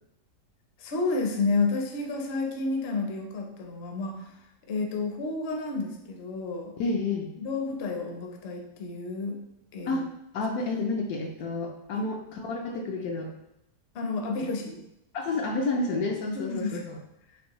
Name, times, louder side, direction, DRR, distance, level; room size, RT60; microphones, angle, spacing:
voice 1, 0.8-4.3 4.7-6.7 7.4-9.4 9.7-10.0 11.9-12.1 13.9-14.8 16.3-16.8, left 3 dB, 50° left, 2 dB, 0.8 m, -30 dB
voice 2, 6.8-7.3 9.9-10.1 10.3-13.3 15.1-17.0, left 3 dB, 75° left, 2 dB, 1.0 m, -30 dB
5.3 x 3.1 x 3.0 m, 0.82 s
omnidirectional pair, 1.7 m